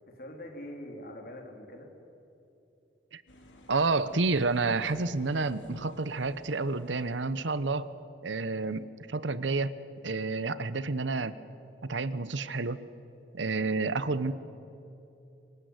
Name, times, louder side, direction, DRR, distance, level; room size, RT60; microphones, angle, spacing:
voice 1, 0.1-1.9 13.5-13.9, left 1 dB, 50° left, 3 dB, 3.4 m, -44 dB
sound 1, 3.3-7.9, left 1 dB, 90° left, 3.4 m, -56 dB
voice 2, 3.7-7.9 8.2-9.8 10.0-11.3 11.8-12.8 13.3-14.3, right 3 dB, 80° right, 15 dB, 1.0 m, -29 dB
25.0 x 20.5 x 9.7 m, 2.9 s
head